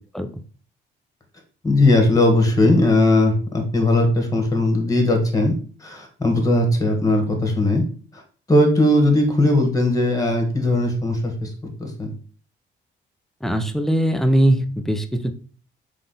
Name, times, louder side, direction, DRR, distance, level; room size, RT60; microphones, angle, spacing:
voice 1, 1.6-5.5 5.8-7.8 8.1-8.2 8.5-11.5 11.8-12.1, left 1 dB, 15° left, 3 dB, 1.5 m, -18 dB
voice 2, 13.4-15.3, right 1 dB, ahead, 7 dB, 0.6 m, -20 dB
3.8 x 3.5 x 3.8 m, 0.41 s
cardioid pair, 90°, 20 cm